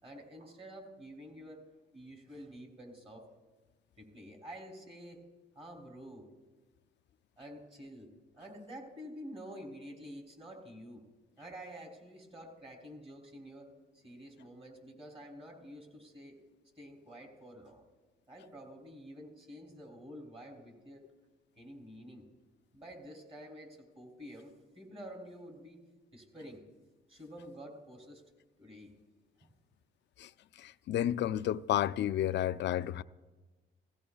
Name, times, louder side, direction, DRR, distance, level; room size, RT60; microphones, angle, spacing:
voice 1, 0.0-1.6 1.9-3.2 4.0-5.2 5.5-6.2 7.4-8.1 8.3-11.0 11.4-16.4 16.7-17.8 18.3-21.0 21.6-22.2 22.7-25.8 26.1-26.6 27.1-28.2 28.6-28.9 29.4-29.5, equal, 30° right, 3.3 m, -49 dB
voice 2, 30.6-33.0, left 11 dB, 65° left, 0.4 m, -31 dB
16.5 x 16.0 x 2.4 m
cardioid pair, 90°, 20 cm